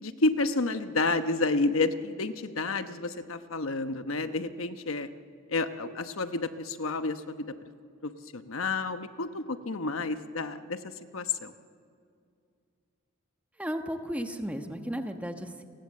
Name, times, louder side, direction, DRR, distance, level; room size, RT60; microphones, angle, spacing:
voice 1, 0.0-5.1 5.5-7.5 8.0-10.8 11.1-11.5, left 3 dB, 85° left, 9 dB, 1.0 m, -30 dB
voice 2, 13.6-15.6, equal, 5° right, 5 dB, 1.2 m, -34 dB
30.0 x 19.0 x 7.6 m, 2.4 s
head